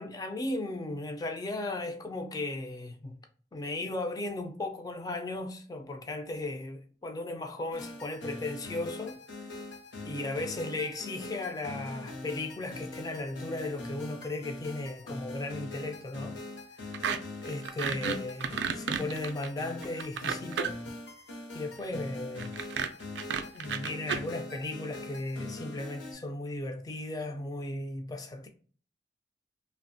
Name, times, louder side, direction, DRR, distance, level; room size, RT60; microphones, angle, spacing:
voice 1, 0.0-3.2 3.5-9.6 10.0-16.4 16.8-17.0 17.4-20.8 21.5-22.6 23.5-28.5, left 2 dB, 20° left, 0.3 m, -36 dB
sound 1, 7.7-26.1, left 2 dB, 80° left, 0.6 m, -42 dB
sound 2, 16.9-17.2 17.5-20.9 22.4-24.2, right 7 dB, 70° right, 0.3 m, -32 dB
2.8 x 2.1 x 2.6 m
head